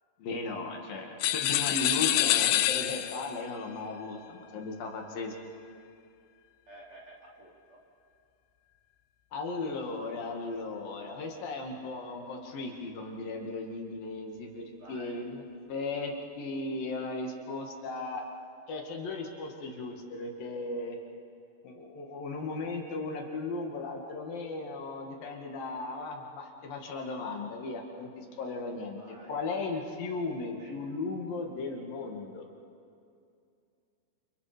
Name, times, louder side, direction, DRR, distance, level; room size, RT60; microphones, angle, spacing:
voice 1, 0.2-5.4 9.3-18.2 18.7-21.0 21.6-29.0 29.3-32.5, left 3 dB, 65° left, 2 dB, 3.6 m, -36 dB
sound 1, 1.2-3.4, left 14 dB, 85° left, 2.6 m, -26 dB
voice 2, 2.1-2.5 6.7-7.8 14.8-15.3 29.0-29.4 30.6-30.8, right 2 dB, 40° right, -3 dB, 3.0 m, -51 dB
29.0 x 28.5 x 5.0 m, 2.5 s
omnidirectional pair, 4.4 m